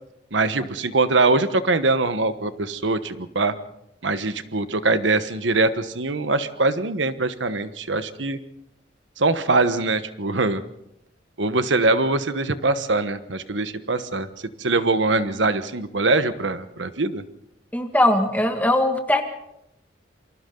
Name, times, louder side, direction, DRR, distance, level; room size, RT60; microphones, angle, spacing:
voice 1, 0.3-3.5 4.0-8.4 9.2-10.6 11.4-14.3 14.6-17.2, right 3 dB, 90° right, 11 dB, 1.3 m, -22 dB
voice 2, 17.7-19.2, left 1 dB, 10° left, 4 dB, 1.9 m, -20 dB
28.0 x 25.5 x 3.9 m, 0.82 s
head